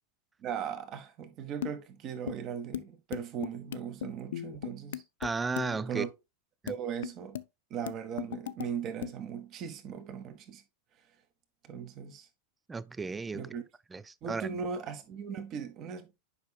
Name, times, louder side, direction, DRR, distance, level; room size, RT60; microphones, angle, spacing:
voice 1, 0.4-5.0 5.9-6.1 6.7-7.4 7.7-10.6 11.6-12.3 13.3-13.6 14.2-16.1, right 7 dB, 35° right, 1.4 m, -38 dB
sound 1, 1.6-1.7 2.3-2.4 2.7-2.8 3.1-5.3 5.6-5.9 6.7-6.8 7.0-7.4 7.9-8.7 9.0-9.1, left 11 dB, 60° left, 0.5 m, -37 dB
voice 2, 5.2-6.0 6.6-6.7 12.7-13.5 13.9-14.5, right 4 dB, 10° right, 0.4 m, -34 dB
10.0 x 5.7 x 2.3 m
figure-of-eight pair, 90°, 0 cm